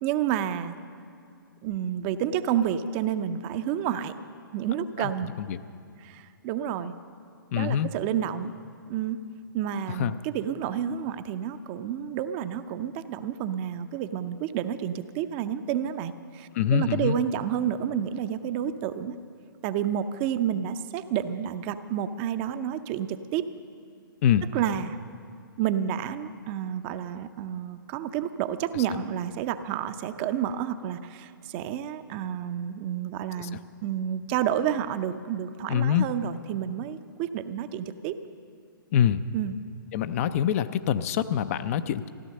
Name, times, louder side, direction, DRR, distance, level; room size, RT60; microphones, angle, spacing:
voice 1, 0.0-0.8 1.6-4.1 4.5-5.3 6.0-6.9 7.5-8.5 8.9-9.2 9.5-19.2 19.6-23.4 24.5-25.0 25.6-38.2 39.3-39.5, right 9 dB, 30° right, 11 dB, 0.6 m, -30 dB
voice 2, 7.5-7.9 9.9-10.2 16.5-17.2 20.5-20.7 24.2-24.5 28.7-28.9 33.4-33.6 35.7-36.1 38.9-39.2 39.9-42.1, left 9 dB, 40° left, 12 dB, 0.5 m, -25 dB
15.0 x 12.0 x 6.6 m, 2.4 s
figure-of-eight pair, 125°, 12 cm